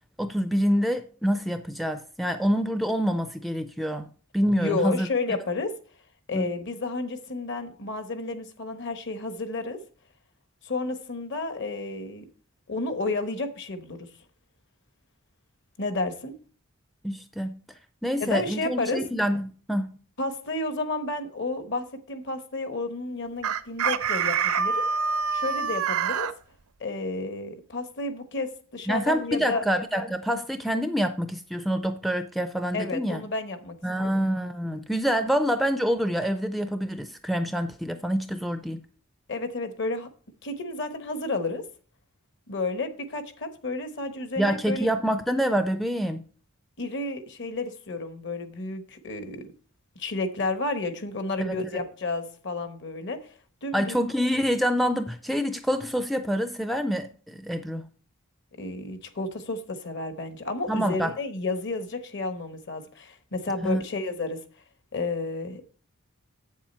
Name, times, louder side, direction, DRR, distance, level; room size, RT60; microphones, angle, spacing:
voice 1, 0.2-5.1 6.3-6.5 17.0-17.6 18.0-19.9 28.9-33.2 33.8-38.8 44.4-46.2 51.4-51.8 53.7-57.8 60.7-61.1 63.6-63.8, equal, ahead, 0.4 m, -26 dB
voice 2, 4.6-5.7 6.3-9.8 10.6-12.2 12.7-14.1 15.8-16.3 18.2-19.0 20.2-24.8 25.3-26.3 26.8-29.6 32.7-34.1 39.3-40.1 40.4-41.6 42.5-44.9 46.8-49.5 49.9-54.0 58.6-64.4 64.9-65.6, left 3 dB, 55° left, 1.1 m, -31 dB
Chicken rooster, 23.4-26.3, right 6 dB, 80° right, 0.6 m, -26 dB
8.1 x 7.3 x 4.3 m
head